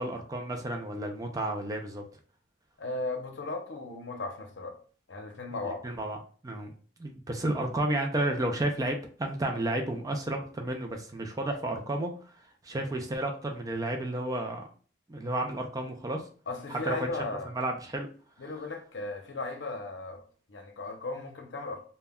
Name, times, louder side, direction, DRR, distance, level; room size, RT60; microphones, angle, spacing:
voice 1, 0.0-2.0 5.6-6.2 6.4-6.7 7.0-12.3 12.6-14.7 15.1-16.2 16.7-17.1 17.4-18.1, right 1 dB, 20° right, 0.3 m, -32 dB
voice 2, 2.8-4.8 5.1-5.8 16.5-17.5 18.4-20.2 20.5-21.9, left 3 dB, 70° left, 0.6 m, -36 dB
2.1 x 2.1 x 3.4 m
head